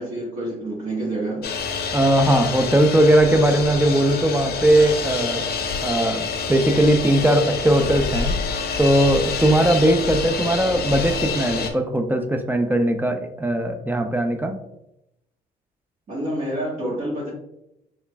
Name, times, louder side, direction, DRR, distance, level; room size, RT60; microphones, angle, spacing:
voice 1, 0.0-1.5 16.1-17.3, right 1 dB, 50° right, -5 dB, 1.4 m, -28 dB
sound 1, 1.4-11.7, left 5 dB, 60° left, 0.6 m, -27 dB
voice 2, 1.9-5.4 5.8-8.4 8.8-14.6, right 1 dB, 10° right, 6 dB, 0.5 m, -19 dB
4.4 x 3.3 x 2.2 m, 0.84 s
supercardioid pair, 75°, 18 cm